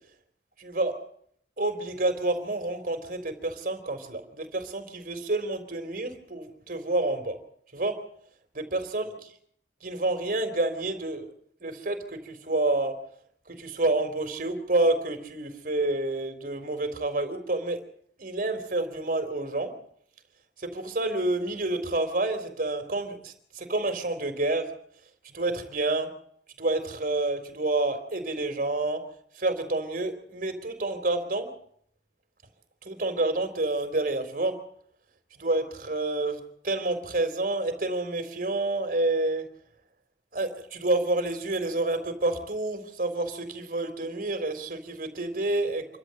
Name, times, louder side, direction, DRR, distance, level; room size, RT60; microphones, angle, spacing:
voice 1, 0.6-1.0 1.6-7.4 7.7-8.0 8.5-9.1 9.8-11.3 11.6-13.0 13.5-17.8 18.2-19.7 20.6-24.7 25.2-26.1 26.6-29.0 29.4-31.5 32.8-34.6 35.3-39.5 40.3-45.9, right 2 dB, 50° right, 7 dB, 3.8 m, -28 dB
27.5 x 13.0 x 7.8 m, 0.65 s
head